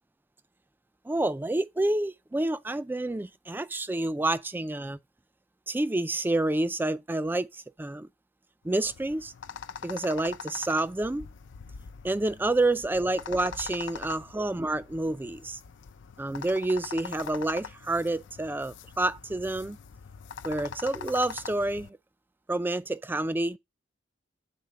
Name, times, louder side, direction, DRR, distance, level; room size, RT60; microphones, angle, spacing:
voice 1, 1.1-5.0 5.7-7.5 7.8-8.1 8.6-9.3 9.8-11.3 12.0-15.6 16.2-19.8 20.4-22.0 22.5-23.6, right 2 dB, 10° right, 0.3 m, -28 dB
sound 1, 8.7-21.9, left 6 dB, 80° left, 0.4 m, -43 dB
6.8 x 4.1 x 4.7 m
head